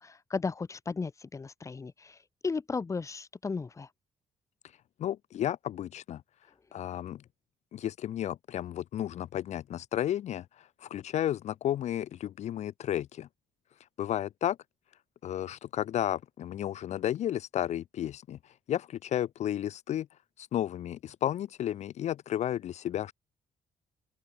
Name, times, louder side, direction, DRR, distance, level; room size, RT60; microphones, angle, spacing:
voice 1, 0.0-2.2 2.4-3.9, left 4 dB, 25° left, 1.0 m, -35 dB
voice 2, 5.0-6.2 6.7-7.2 7.7-13.3 14.0-14.6 15.2-20.1 20.4-23.1, left 11 dB, 60° left, 0.6 m, -33 dB
open air
cardioid pair, 115°, 13 cm